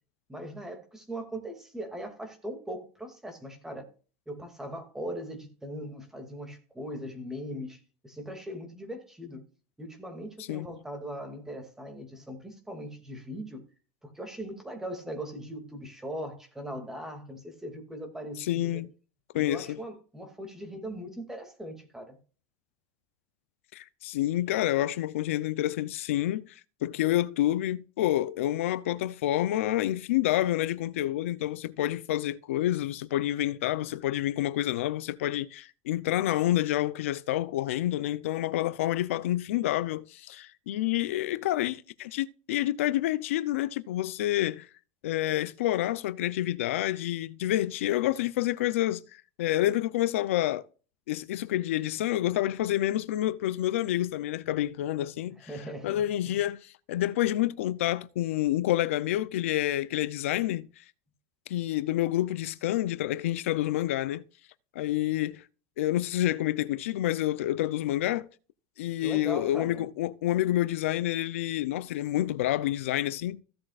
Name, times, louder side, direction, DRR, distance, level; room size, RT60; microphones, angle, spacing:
voice 1, 0.3-3.9 4.3-9.4 9.8-13.6 14.0-18.8 19.3-22.2 55.5-56.4 69.0-69.8, equal, 5° right, 2.5 m, -40 dB
voice 2, 18.4-18.9 19.3-19.8 23.7-44.7 45.0-50.7 51.1-55.4 55.8-60.8 61.5-64.2 64.7-65.4 65.8-68.3 68.8-73.4, left 14 dB, 90° left, 0.6 m, -28 dB
15.5 x 7.6 x 2.5 m
supercardioid pair, 135°, 7 cm